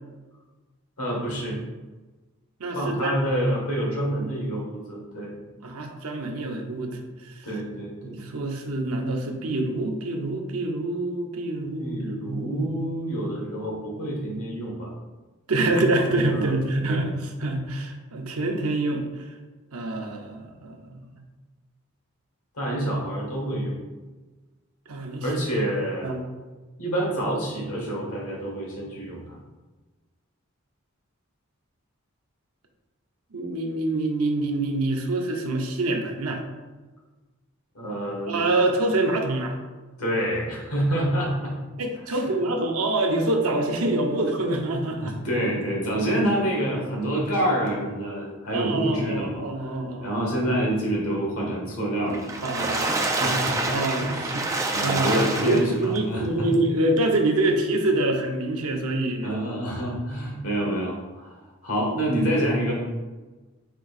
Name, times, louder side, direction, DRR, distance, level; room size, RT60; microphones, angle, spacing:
voice 1, 1.0-1.6 2.7-5.3 7.4-8.2 11.8-14.9 16.3-16.5 16.8-17.0 22.5-23.8 25.2-26.2 26.8-29.3 37.7-38.4 40.0-41.5 42.1-42.2 45.0-49.4 50.0-54.3 54.7-56.5 59.2-61.3 61.6-62.7, right 1 dB, 85° left, -2 dB, 1.4 m, -27 dB
voice 2, 2.6-3.1 5.6-7.5 8.0-12.8 15.5-19.3 19.7-21.2 24.9-25.3 26.0-26.3 33.3-36.4 38.3-39.6 41.8-45.2 48.5-50.2 52.4-53.0 53.7-54.4 54.8-59.3, right 2 dB, 85° right, 3 dB, 0.7 m, -26 dB
Water / Splash splatter, 52.1-56.0 56.5-56.6 57.0-57.1, right 2 dB, 15° right, 0.3 m, -27 dB
4.5 x 2.6 x 4.0 m, 1.2 s
head